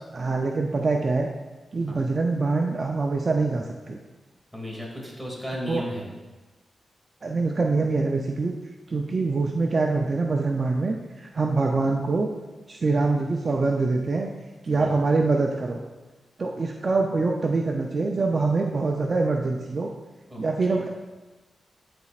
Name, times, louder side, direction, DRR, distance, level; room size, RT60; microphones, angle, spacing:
voice 1, 0.1-1.3 1.7-4.0 5.7-5.8 7.2-8.6 8.9-12.3 12.7-14.3 14.6-15.8 16.4-19.9 20.4-20.9, right 3 dB, 50° right, 2 dB, 0.5 m, -24 dB
voice 2, 4.5-6.1 14.8-15.0 20.3-20.8, left 1 dB, 5° right, -3 dB, 2.2 m, -35 dB
12.0 x 4.2 x 2.4 m, 1.2 s
cardioid pair, 75°, 0 cm